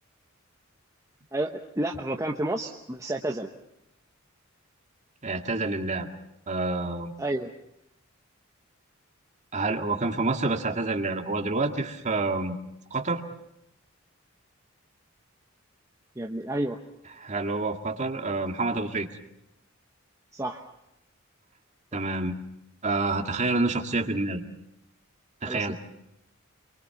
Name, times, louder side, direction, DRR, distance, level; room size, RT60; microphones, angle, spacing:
voice 1, 1.3-3.5 7.2-7.5 16.2-16.8 20.3-20.6 21.9-22.0 25.4-25.7, right 1 dB, 15° right, 2 dB, 1.1 m, -30 dB
voice 2, 5.2-6.1 6.5-7.1 9.5-12.6 12.9-13.2 17.2-19.1 21.9-22.4 22.8-24.4 25.4-25.7, right 3 dB, 35° right, 4 dB, 2.0 m, -28 dB
27.0 x 23.5 x 5.9 m, 0.84 s
head